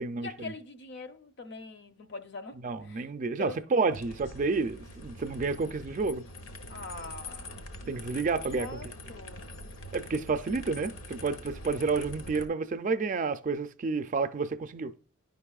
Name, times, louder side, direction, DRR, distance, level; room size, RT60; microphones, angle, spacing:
voice 1, 0.2-3.1 3.4-3.6 6.7-7.6 8.6-9.4, left 3 dB, 55° left, 0.6 m, -43 dB
voice 2, 2.6-6.2 7.9-8.7 9.9-14.9, right 4 dB, 40° right, 0.4 m, -30 dB
sound 1, 3.9-12.5, left 1 dB, 75° left, 1.0 m, -44 dB
10.5 x 5.3 x 2.3 m
head